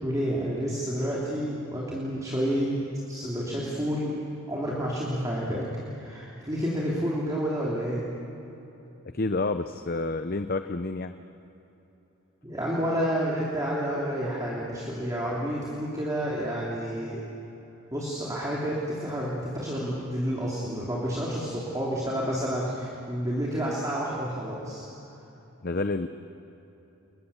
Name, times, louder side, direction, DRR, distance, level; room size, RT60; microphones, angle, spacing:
voice 1, 0.0-2.7 3.1-4.2 4.5-8.0 12.4-17.2 17.9-24.8, equal, 15° right, -5 dB, 3.1 m, -30 dB
voice 2, 9.1-11.1 25.6-26.1, left 3 dB, 45° left, 9 dB, 0.6 m, -29 dB
30.0 x 22.0 x 7.1 m, 3.0 s
head